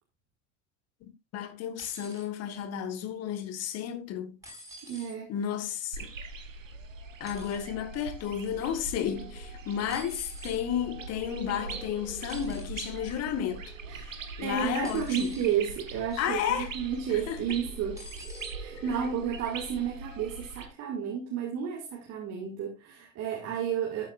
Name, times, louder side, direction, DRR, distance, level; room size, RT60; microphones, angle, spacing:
voice 1, 1.0-4.4 5.3-6.1 7.2-15.3 16.2-16.7 17.3-17.4 18.7-18.8, left 9 dB, 40° left, 1.4 m, -33 dB
sound 1, 1.8-2.3 4.4-5.2 7.2-7.6 9.9-10.6 12.3-12.8 14.8-15.5 16.1-16.4 18.0-18.5 19.6-19.7, equal, 10° right, 5.4 m, -48 dB
voice 2, 4.9-5.3 9.9-10.0 13.9-14.0 14.4-18.0 18.5-24.1, right 8 dB, 40° right, 2.2 m, -32 dB
sound 2, 5.9-20.7, right 4 dB, 80° right, 1.2 m, -41 dB
12.0 x 8.7 x 2.4 m
figure-of-eight pair, 70°, 38 cm